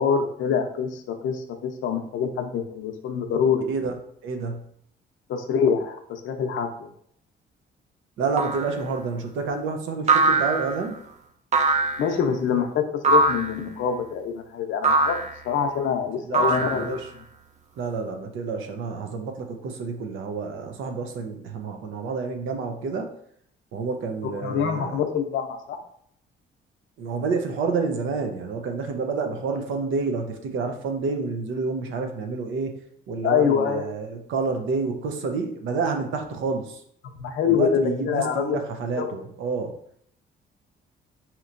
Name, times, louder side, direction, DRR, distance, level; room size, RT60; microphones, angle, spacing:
voice 1, 0.0-3.7 5.3-6.9 12.0-15.2 15.5-17.0 24.4-25.8 33.2-33.8 37.0-38.6 39.0-39.1, left 7 dB, 75° left, 5 dB, 0.6 m, -25 dB
voice 2, 4.2-4.6 8.2-11.0 16.2-17.1 17.8-23.1 23.7-25.0 27.0-32.7 33.1-36.8 37.5-39.7, right 4 dB, 80° right, 5 dB, 0.6 m, -29 dB
sound 1, 8.4-8.8 10.1-10.9 11.5-12.1 13.0-13.6 14.8-15.4 16.3-17.1, right 3 dB, 35° right, 0.5 m, -21 dB
4.4 x 2.9 x 2.5 m, 0.68 s
cardioid pair, 90°, 20 cm